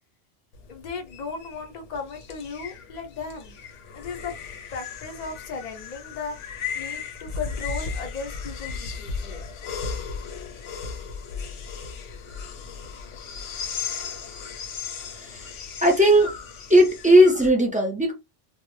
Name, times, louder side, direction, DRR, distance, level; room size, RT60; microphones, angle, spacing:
sound 1, 0.5-17.5, left 6 dB, 80° left, 0.9 m, -36 dB
voice 1, 0.7-3.5 3.9-4.3 4.7-9.4, left 4 dB, 50° left, 0.6 m, -36 dB
voice 2, 15.1-15.5 15.8-16.3 16.7-18.1, equal, 10° right, 0.3 m, -17 dB
2.0 x 2.0 x 3.0 m
omnidirectional pair, 1.2 m